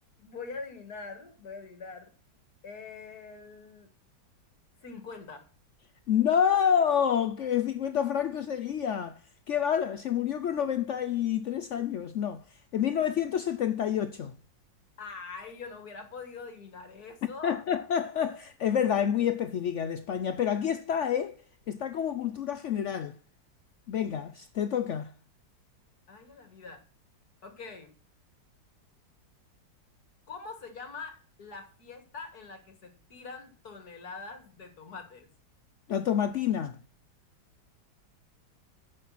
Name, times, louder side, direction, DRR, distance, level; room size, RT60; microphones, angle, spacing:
voice 1, 0.2-2.1 2.6-3.9 4.8-5.5 15.0-17.6 26.1-26.8 27.4-27.9 30.3-35.3, left 4 dB, 55° left, 2.2 m, -43 dB
voice 2, 6.1-9.2 9.5-12.4 12.7-14.4 17.4-21.4 21.7-23.1 23.9-25.1 35.9-36.8, left 8 dB, 80° left, 0.6 m, -28 dB
10.0 x 6.8 x 5.6 m
omnidirectional pair, 2.0 m